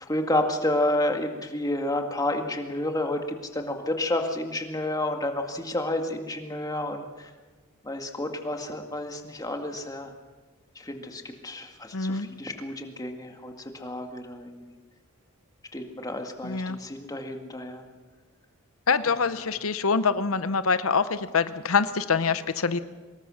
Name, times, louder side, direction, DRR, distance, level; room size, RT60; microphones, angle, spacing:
voice 1, 0.0-7.3 7.8-10.1 10.8-14.7 15.7-17.9 19.4-19.5, left 1 dB, 15° left, 4 dB, 2.0 m, -30 dB
voice 2, 11.9-12.3 16.4-16.8 18.9-22.8, left 5 dB, 70° left, 13 dB, 0.8 m, -25 dB
24.5 x 20.5 x 6.4 m, 1.3 s
head